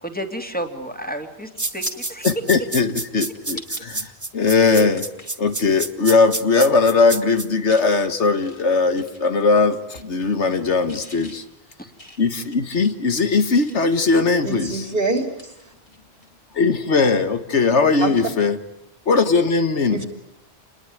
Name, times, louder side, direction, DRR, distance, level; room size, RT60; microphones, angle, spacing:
voice 1, 0.0-2.3 11.8-11.9, right 1 dB, 10° left, 5 dB, 2.7 m, -31 dB
sound 1, 1.4-1.9 2.4-3.9 4.3-4.4 4.9-5.4 5.8-6.0 6.3-6.8 7.1-7.9 8.3-9.6 9.9-10.6 10.9-14.0 14.5-16.3 16.6-16.8 18.7-18.8, left 1 dB, 30° left, 3.1 m, -43 dB
sound 2, 1.6-7.5, right 2 dB, 15° right, 1.1 m, -28 dB
voice 2, 2.2-5.1 5.4-11.4 12.2-14.8 16.5-18.6 19.1-20.0, left 4 dB, 90° left, 10 dB, 1.9 m, -19 dB
voice 3, 14.4-15.7 18.0-18.1 19.9-20.1, right 2 dB, 55° right, 6 dB, 3.5 m, -25 dB
28.5 x 21.0 x 9.5 m, 0.83 s
omnidirectional pair, 1.1 m